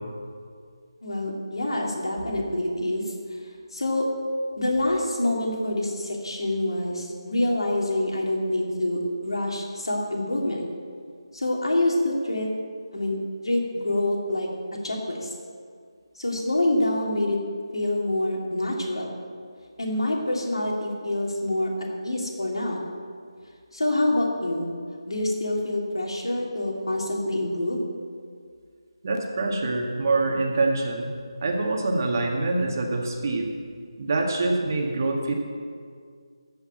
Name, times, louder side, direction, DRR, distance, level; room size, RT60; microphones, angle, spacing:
voice 1, 1.0-3.0 3.7-4.1 4.6-10.6 11.3-12.5 12.9-14.5 14.8-15.3 16.1-17.4 17.7-19.1 19.8-22.9 23.7-24.7 25.1-27.8, left 1 dB, 70° left, -1 dB, 2.9 m, -26 dB
voice 2, 29.0-31.1 31.4-33.6 34.0-35.3, right 2 dB, 40° right, 1 dB, 1.8 m, -25 dB
14.0 x 5.7 x 7.6 m, 2.1 s
figure-of-eight pair, 160°, 3 cm